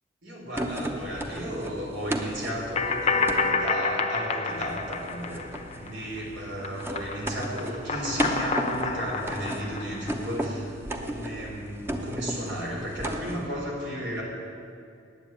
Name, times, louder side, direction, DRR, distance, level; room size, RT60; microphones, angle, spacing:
voice 1, 0.2-14.2, equal, 90° right, -2 dB, 3.5 m, -34 dB
sound 1, 0.5-3.5 4.5-13.5, right 1 dB, 15° right, 0.7 m, -35 dB
sound 2, 2.7-6.2 6.5-10.4, left 4 dB, 35° left, 0.7 m, -29 dB
9.2 x 8.2 x 8.8 m, 2.3 s
head